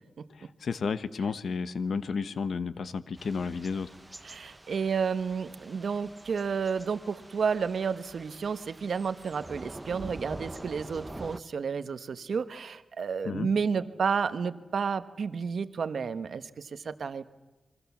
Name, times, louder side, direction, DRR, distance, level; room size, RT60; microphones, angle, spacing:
voice 1, 0.3-3.9 13.2-13.5, left 5 dB, 75° left, 13 dB, 1.1 m, -32 dB
Thunder / Rain, 3.2-11.4, right 1 dB, 15° right, 0.8 m, -46 dB
voice 2, 4.2-17.3, right 6 dB, 70° right, 11 dB, 1.2 m, -31 dB
28.0 x 23.5 x 7.3 m, 1.1 s
wide cardioid pair, 105°, 0 cm